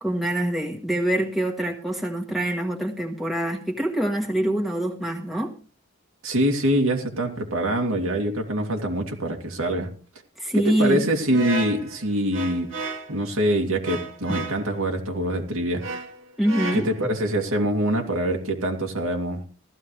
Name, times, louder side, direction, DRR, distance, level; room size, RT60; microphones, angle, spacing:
voice 1, 0.0-5.5 10.4-11.0 16.4-16.9, right 1 dB, ahead, -2 dB, 1.4 m, -25 dB
voice 2, 6.2-9.9 10.5-12.7 13.1-15.8 16.7-19.4, right 1 dB, 85° right, 1 dB, 2.3 m, -24 dB
sound 1, 11.3-13.2 13.8-14.7 15.8-17.2, right 3 dB, 70° right, 2.2 m, -33 dB
15.5 x 13.5 x 3.3 m, 0.37 s
head